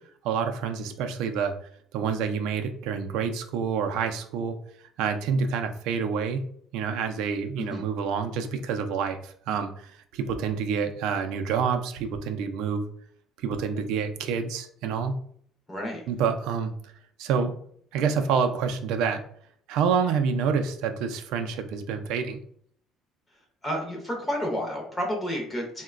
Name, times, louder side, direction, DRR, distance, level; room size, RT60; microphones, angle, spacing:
voice 1, 0.2-1.5 1.9-4.6 5.0-6.4 6.7-12.8 13.4-15.2 16.1-16.7 17.2-17.5 17.9-19.2 19.7-22.4, right 6 dB, 70° right, 6 dB, 0.4 m, -27 dB
voice 2, 15.7-16.0 23.6-25.8, equal, 15° left, 0 dB, 0.5 m, -30 dB
3.8 x 2.1 x 2.4 m, 0.62 s
cardioid pair, 170°, 0 cm